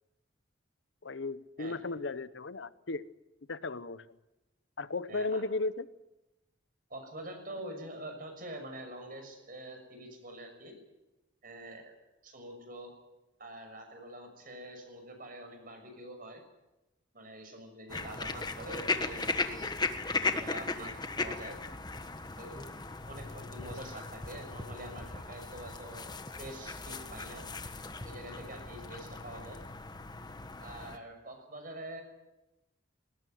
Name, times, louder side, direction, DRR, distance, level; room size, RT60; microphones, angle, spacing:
voice 1, 1.0-3.1 3.5-4.0 4.8-5.9, left 3 dB, 80° left, 15 dB, 0.9 m, -35 dB
voice 2, 5.1-5.4 6.9-10.7 11.4-11.9 12.2-12.9 13.4-16.4 17.1-19.7 20.1-21.6 22.4-22.7 23.1-27.4 28.0-29.6 30.6-32.0, right 1 dB, 50° right, 5 dB, 6.4 m, -45 dB
sound 1, 17.9-31.0, left 3 dB, 25° left, 1.4 m, -37 dB
20.5 x 19.0 x 9.4 m, 0.99 s
head